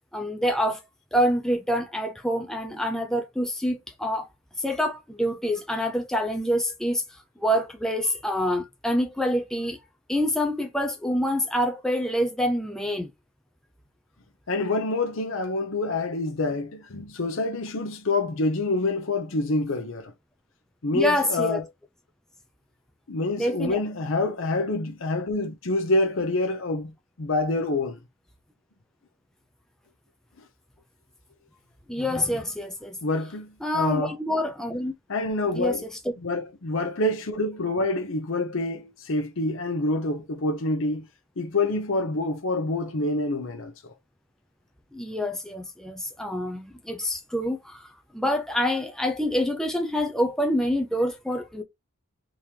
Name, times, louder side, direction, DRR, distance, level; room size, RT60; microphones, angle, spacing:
voice 1, 0.1-0.8 1.1-4.3 4.6-7.0 7.4-9.8 10.1-13.1 20.9-21.6 23.4-23.8 31.9-33.0 33.6-34.9 35.5-35.8 44.9-47.9 48.1-51.6, equal, ahead, 0.4 m, -26 dB
voice 2, 14.5-20.1 20.8-21.6 23.1-28.0 33.0-34.2 35.1-35.8 36.2-41.0 41.4-43.7, left 2 dB, 60° left, 0.7 m, -27 dB
3.6 x 2.9 x 3.1 m
head